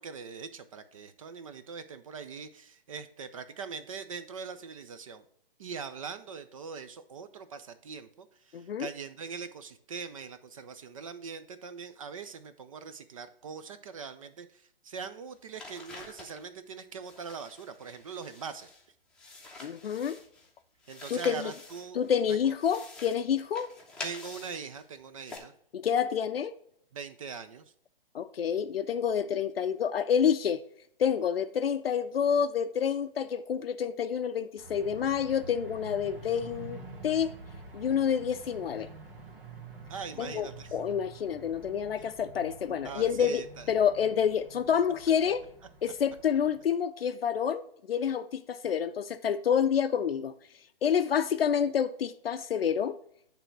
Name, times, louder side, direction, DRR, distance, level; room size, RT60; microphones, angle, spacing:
voice 1, 0.0-5.2 5.6-18.7 20.9-22.0 22.3-22.6 24.0-25.5 26.9-27.7 39.9-40.8 42.0-42.1 42.8-43.7, right 6 dB, 35° right, 0.4 m, -42 dB
voice 2, 8.5-8.9 19.6-20.2 21.1-21.5 21.9-23.7 25.7-26.5 28.1-30.6 31.0-37.3 37.7-38.9 40.2-45.4 45.8-50.3 50.8-53.0, left 8 dB, 80° left, 0.5 m, -28 dB
sound 1, 15.3-16.5 17.0-18.8 19.1-20.5 20.8-22.1 22.5-24.8 25.2-25.4, left 3 dB, ahead, 0.8 m, -47 dB
sound 2, 34.6-46.6, right 3 dB, 65° right, 1.7 m, -48 dB
8.7 x 3.4 x 5.9 m
hypercardioid pair, 135°, 29 cm